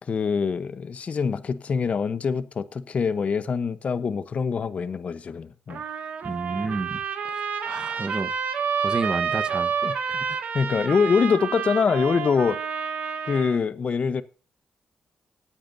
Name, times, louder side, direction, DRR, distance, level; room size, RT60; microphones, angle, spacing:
voice 1, 0.0-5.8 9.8-9.9 10.5-12.6 13.2-14.2, left 5 dB, 60° left, 0.9 m, -24 dB
Trumpet, 5.7-13.6, right 6 dB, 80° right, 2.0 m, -29 dB
voice 2, 6.2-8.3 8.8-9.7 10.1-10.4, right 3 dB, 35° right, 1.2 m, -31 dB
21.0 x 8.7 x 2.7 m
cardioid pair, 65°, 3 cm